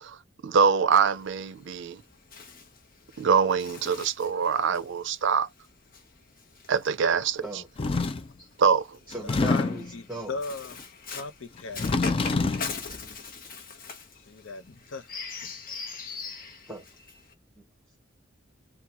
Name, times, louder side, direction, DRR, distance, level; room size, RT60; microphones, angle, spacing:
voice 1, 0.0-2.0 3.2-5.5 6.7-7.6 8.6-9.0, right 6 dB, 65° right, 0.5 m, -24 dB
Bird, 1.1-7.6 8.5-17.3, left 5 dB, 50° left, 1.0 m, -42 dB
sound 1, 7.8-8.3 9.1-9.9 11.6-12.7, left 3 dB, 30° left, 0.4 m, -26 dB
voice 2, 9.1-10.4 16.7-16.8, right 2 dB, 5° right, 0.9 m, -38 dB
voice 3, 9.9-10.8 11.1-12.2 14.3-15.1, left 4 dB, 75° left, 0.7 m, -37 dB
3.8 x 2.3 x 2.9 m
head